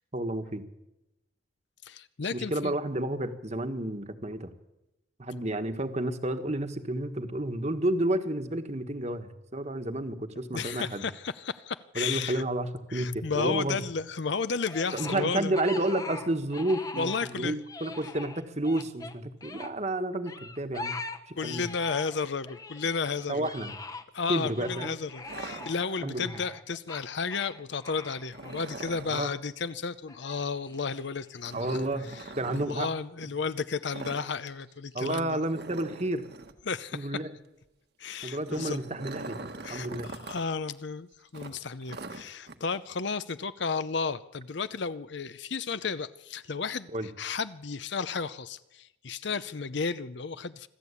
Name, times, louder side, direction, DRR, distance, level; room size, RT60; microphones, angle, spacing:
voice 1, 0.1-0.7 2.3-4.5 5.2-11.0 11.9-13.8 14.9-21.0 21.3-21.7 23.3-23.8 24.3-24.9 26.0-26.3 29.1-29.3 31.5-32.9 34.9-36.2 36.9-37.3 38.2-40.1 46.9-47.1, right 1 dB, 35° right, 8 dB, 1.5 m, -31 dB
voice 2, 1.8-2.7 10.5-12.4 12.9-15.6 17.0-17.6 21.4-23.5 24.1-31.8 32.1-32.2 32.5-35.4 36.7-37.2 38.0-38.8 39.6-50.7, left 5 dB, 60° left, 14 dB, 0.6 m, -33 dB
sound 1, 14.7-17.3 17.6-19.7 20.3-22.2 22.5-29.5 30.1-31.4, left 3 dB, 15° left, 0.9 m, -43 dB
sound 2, 25.2-26.3 28.3-29.2 31.4-32.7 33.9-34.3 34.5-34.7 35.0-35.1 35.5-36.6 38.2-40.4 40.7-40.8 41.3-42.6, right 2 dB, 50° right, 1.4 m, -42 dB
25.5 x 14.0 x 8.4 m, 0.95 s
head